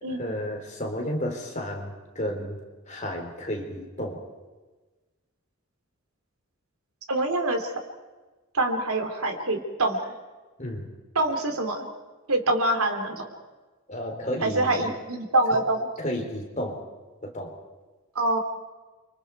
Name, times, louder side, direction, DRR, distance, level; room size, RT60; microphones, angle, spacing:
voice 1, 0.1-2.6 2.9-4.2 10.6-10.9 13.9-15.0 15.5-15.6 16.0-16.8 17.2-17.5, equal, 35° left, 2 dB, 3.7 m, -32 dB
voice 2, 7.1-7.7 8.5-10.1 11.1-11.9 12.3-13.2 14.4-15.9 18.1-18.4, right 2 dB, 85° right, 5 dB, 3.0 m, -25 dB
29.5 x 25.5 x 4.7 m, 1.3 s
head